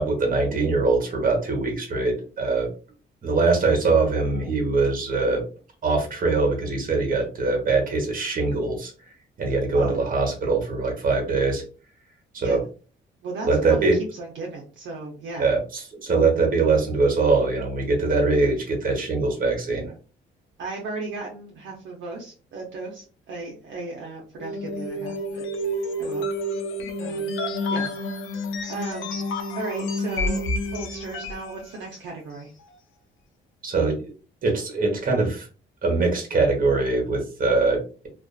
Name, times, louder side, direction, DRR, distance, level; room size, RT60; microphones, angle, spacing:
voice 1, 0.0-2.7 3.2-5.4 5.8-8.9 9.4-11.6 12.3-12.6 13.4-14.0 15.4-19.9 33.6-34.1 34.4-35.5 35.8-38.1, right 3 dB, 45° right, 2 dB, 1.0 m, -22 dB
voice 2, 9.7-10.0 12.4-12.6 13.2-15.5 20.6-26.3 27.0-27.3 27.7-27.9 28.7-29.2 29.5-32.5, right 3 dB, 65° right, -1 dB, 0.7 m, -36 dB
sound 1, 24.4-31.5, left 1 dB, 85° left, 0.5 m, -29 dB
2.4 x 2.3 x 2.3 m, 0.37 s
cardioid pair, 90°, 20 cm